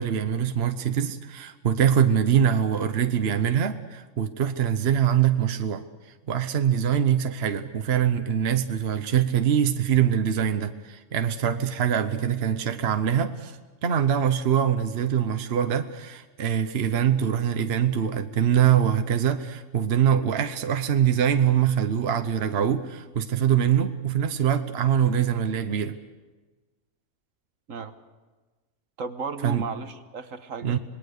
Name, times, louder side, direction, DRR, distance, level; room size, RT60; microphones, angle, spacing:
voice 1, 0.0-5.8 6.3-26.0 29.4-29.7 30.6-30.8, right 9 dB, 50° right, 8 dB, 1.1 m, -23 dB
voice 2, 29.0-30.8, right 4 dB, 70° right, 9 dB, 1.6 m, -34 dB
26.5 x 20.5 x 6.6 m, 1.3 s
omnidirectional pair, 1.4 m